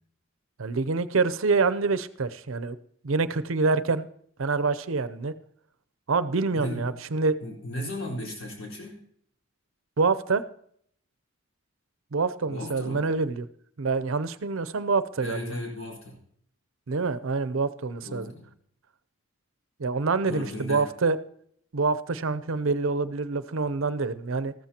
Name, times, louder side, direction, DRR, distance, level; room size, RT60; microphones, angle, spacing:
voice 1, 0.6-2.8 3.0-4.1 4.4-5.3 6.1-7.4 10.0-10.4 12.1-13.4 13.8-15.5 16.9-18.3 19.8-21.2 21.7-24.5, right 4 dB, 75° right, 14 dB, 0.6 m, -26 dB
voice 2, 6.5-6.9 7.4-9.0 12.5-13.1 15.2-16.2 18.0-18.5 20.3-20.8, left 1 dB, 80° left, -2 dB, 4.4 m, -36 dB
14.0 x 13.5 x 2.9 m, 0.66 s
head